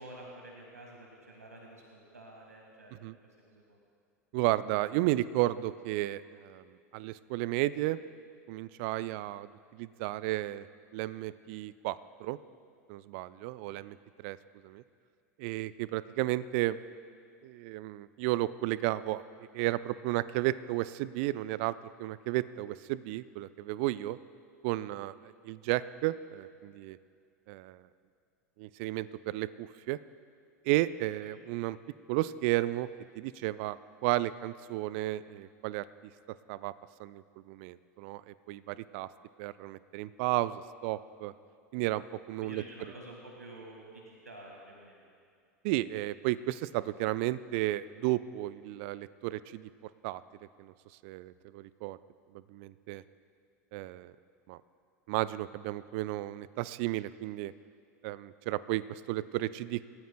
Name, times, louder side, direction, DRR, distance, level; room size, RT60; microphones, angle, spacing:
voice 1, 0.0-3.0 3.4-3.8 13.6-13.8 31.2-31.4 42.4-45.1, right 1 dB, 85° right, 0 dB, 1.6 m, -49 dB
voice 2, 4.3-6.6 6.9-8.0 8.5-10.7 10.9-12.4 12.9-14.4 14.6-14.8 15.4-16.8 17.4-24.2 24.6-27.0 27.5-27.8 28.6-30.0 30.6-31.8 32.1-32.9 33.2-35.8 36.5-36.7 37.0-39.1 39.4-41.3 41.7-42.6 45.6-49.7 50.0-50.2 50.6-50.7 51.0-52.0 52.3-53.0 53.7-54.1 54.5-54.6 55.1-57.5 58.0-59.8, right 16 dB, 50° right, 17 dB, 0.4 m, -33 dB
27.5 x 14.0 x 2.2 m, 2.3 s
figure-of-eight pair, 80°, 8 cm